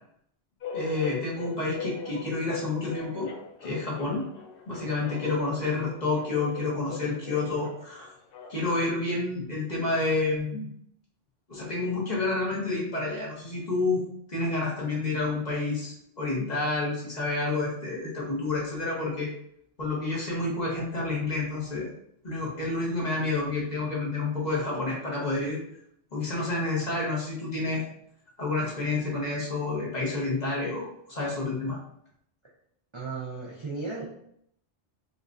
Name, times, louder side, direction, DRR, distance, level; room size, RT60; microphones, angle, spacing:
sound 1, 0.6-8.8, left 5 dB, 60° left, 0.7 m, -40 dB
voice 1, 0.7-3.3 3.6-4.2 4.7-8.1 8.5-10.7 11.5-14.0 14.3-19.3 19.8-21.9 22.2-25.6 26.1-27.8 28.4-31.8, left 3 dB, 35° left, -4 dB, 1.2 m, -29 dB
voice 2, 32.9-34.0, right 4 dB, 40° right, -3 dB, 0.4 m, -35 dB
5.1 x 2.4 x 2.5 m, 0.71 s
omnidirectional pair, 1.2 m